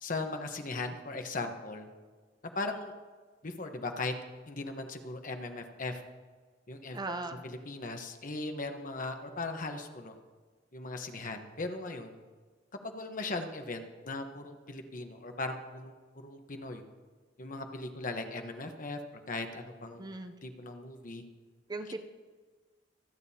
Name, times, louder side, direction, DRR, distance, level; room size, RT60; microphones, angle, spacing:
voice 1, 0.0-1.9 2.5-2.9 3.4-4.1 4.5-6.0 6.7-7.1 7.4-10.1 10.7-12.2 12.8-16.8 17.4-20.0 20.4-21.2, left 2 dB, 45° left, 5 dB, 1.1 m, -38 dB
voice 2, 6.9-7.4 20.0-20.3 21.7-22.0, right 2 dB, 20° right, 7 dB, 0.6 m, -38 dB
25.5 x 9.2 x 2.8 m, 1.4 s
head